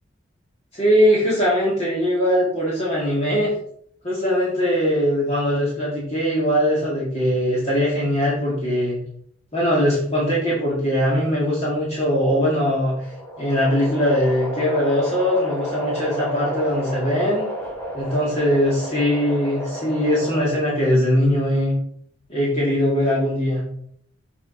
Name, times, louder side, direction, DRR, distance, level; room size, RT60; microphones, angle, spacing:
voice 1, 0.7-3.5 4.0-9.0 9.5-12.9 13.4-17.4 17.9-21.7 22.3-23.6, equal, 30° left, -6 dB, 2.1 m, -21 dB
sound 1, 12.8-20.8, equal, 15° left, 2.4 m, -32 dB
7.3 x 5.3 x 3.8 m, 0.65 s
head